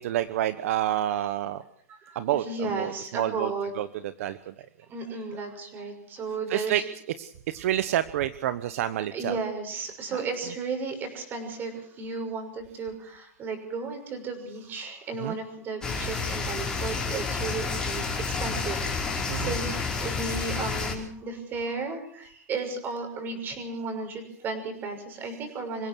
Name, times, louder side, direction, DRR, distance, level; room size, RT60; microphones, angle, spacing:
voice 1, 0.0-1.6 2.1-4.5 5.1-5.2 6.5-6.8 7.1-9.4 10.1-10.5 15.2-15.4 19.3-19.6 25.2-25.4, right 12 dB, 60° right, 13 dB, 1.1 m, -29 dB
voice 2, 1.9-3.7 4.9-6.8 9.1-25.9, right 4 dB, 25° right, 6 dB, 6.2 m, -34 dB
sound 1, 15.8-20.9, left 4 dB, 10° left, 4.9 m, -30 dB
26.5 x 16.5 x 6.3 m, 0.64 s
hypercardioid pair, 150°, 8 cm